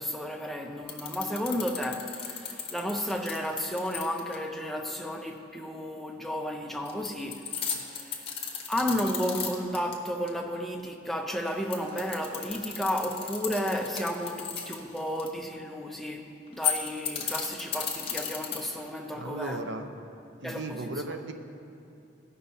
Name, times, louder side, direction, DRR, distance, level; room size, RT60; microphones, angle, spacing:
voice 1, 0.0-8.4 8.7-19.8 20.4-21.2, equal, ahead, 0.4 m, -33 dB
sound 1, 0.9-4.3 6.8-9.9 10.3-10.4 11.5-15.3 16.5-18.9, left 7 dB, 30° left, 0.9 m, -34 dB
voice 2, 19.1-19.9 20.4-21.3, right 2 dB, 65° right, 0.6 m, -36 dB
14.0 x 5.5 x 4.1 m
head